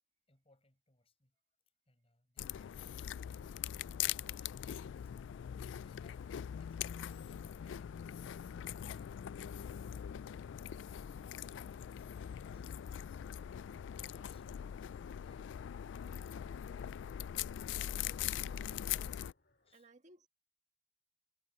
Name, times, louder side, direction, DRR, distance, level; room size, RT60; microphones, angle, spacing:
voice 1, 0.3-1.4 1.9-3.4 4.0-5.1 5.8-6.3 6.6-10.0 11.4-13.2 13.9-14.6 19.6-19.9, left 2 dB, 30° left, 5.8 m, -71 dB
sound 1, 2.4-19.3, left 10 dB, 75° left, 0.3 m, -42 dB
sound 2, 5.5-19.7, left 1 dB, 60° left, 3.3 m, -72 dB
voice 2, 18.8-19.3 19.7-20.3, right 2 dB, 40° right, 1.8 m, -62 dB
head